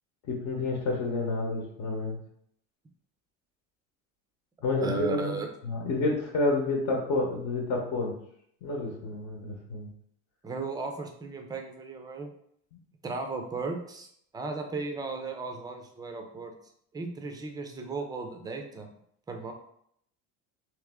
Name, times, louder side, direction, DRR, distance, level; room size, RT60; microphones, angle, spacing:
voice 1, 0.3-2.2 4.6-8.1 8.6-9.9, left 2 dB, 55° left, 0 dB, 1.0 m, -29 dB
voice 2, 4.8-5.5 10.4-12.3 13.0-14.1 14.3-16.5 16.9-18.9 19.3-19.5, right 3 dB, 10° right, 3 dB, 0.4 m, -35 dB
3.4 x 3.0 x 3.5 m, 0.69 s
cardioid pair, 135°, 36 cm